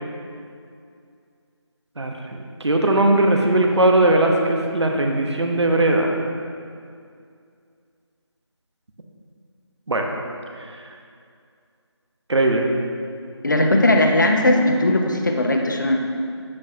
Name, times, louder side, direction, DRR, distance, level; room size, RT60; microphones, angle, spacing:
voice 1, 2.0-6.2 9.9-10.1 12.3-12.7, right 1 dB, 70° right, 2 dB, 1.1 m, -19 dB
voice 2, 13.4-16.0, left 1 dB, 40° left, 2 dB, 0.8 m, -18 dB
9.8 x 9.0 x 2.8 m, 2.3 s
figure-of-eight pair, 175°, 15 cm